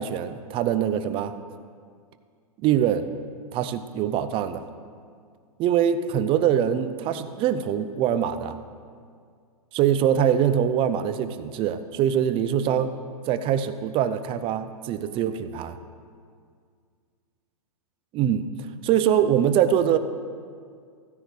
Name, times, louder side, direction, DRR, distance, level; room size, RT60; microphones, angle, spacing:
voice 1, 0.0-1.3 2.6-3.1 3.5-4.7 5.6-8.6 9.7-12.9 13.3-15.8 18.1-20.0, right 9 dB, 25° right, 11 dB, 0.5 m, -23 dB
15.5 x 10.0 x 3.2 m, 2.1 s
hypercardioid pair, 125°, 20 cm